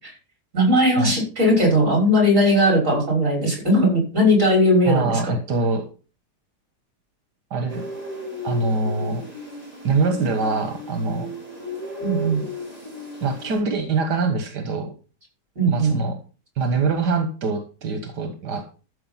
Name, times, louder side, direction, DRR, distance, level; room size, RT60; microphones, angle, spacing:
voice 1, 0.5-5.3 12.0-12.5 15.6-16.0, equal, 50° right, 1 dB, 6.2 m, -18 dB
voice 2, 4.9-5.8 7.5-7.8 8.4-9.2 9.8-11.3 13.2-14.9 15.7-16.2 16.6-18.8, right 3 dB, 85° right, 6 dB, 2.1 m, -24 dB
sound 1, 7.7-13.6, left 1 dB, 20° right, 6.0 m, -35 dB
13.5 x 7.0 x 5.7 m, 0.36 s
omnidirectional pair, 1.7 m